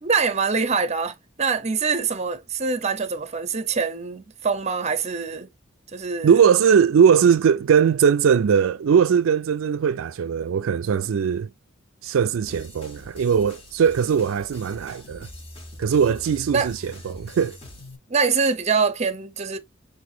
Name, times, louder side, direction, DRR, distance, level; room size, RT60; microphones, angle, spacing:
voice 1, 0.0-5.5 5.9-6.3 16.5-16.7 18.1-19.6, right 5 dB, 35° right, 0.7 m, -24 dB
voice 2, 6.2-11.5 12.0-15.3 15.8-17.6, right 7 dB, 85° right, 0.4 m, -20 dB
sound 1, 12.5-18.0, left 1 dB, 30° left, 1.6 m, -43 dB
6.0 x 2.7 x 2.7 m
head